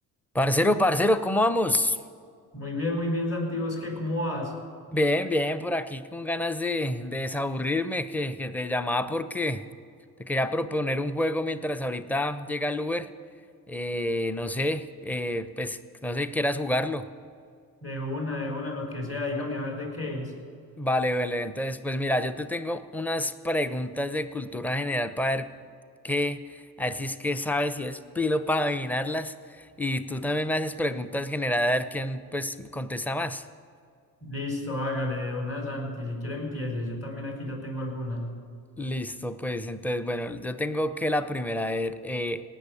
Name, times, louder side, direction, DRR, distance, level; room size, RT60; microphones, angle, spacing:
voice 1, 0.3-2.0 4.9-9.6 10.2-13.1 13.7-17.1 20.8-25.5 26.0-33.4 38.8-42.4, left 1 dB, 5° left, 12 dB, 0.7 m, -28 dB
voice 2, 2.5-4.5 17.8-20.3 34.2-38.3, left 1 dB, 35° left, 1 dB, 4.3 m, -31 dB
18.0 x 6.4 x 8.5 m, 2.3 s
supercardioid pair, 60°, 41 cm